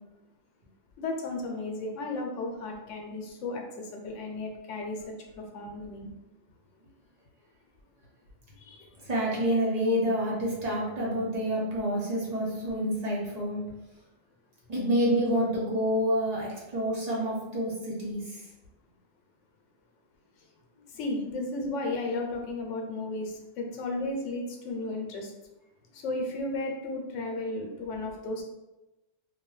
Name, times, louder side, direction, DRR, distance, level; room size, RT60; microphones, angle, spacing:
voice 1, 1.0-5.0 5.3-6.1 8.6-8.9 9.9-10.0 21.0-25.3 25.9-28.4, left 2 dB, 80° left, 2 dB, 0.9 m, -34 dB
voice 2, 9.1-13.6 14.7-18.2, equal, 40° right, -5 dB, 0.7 m, -28 dB
2.6 x 2.2 x 3.1 m, 1.0 s
omnidirectional pair, 1.3 m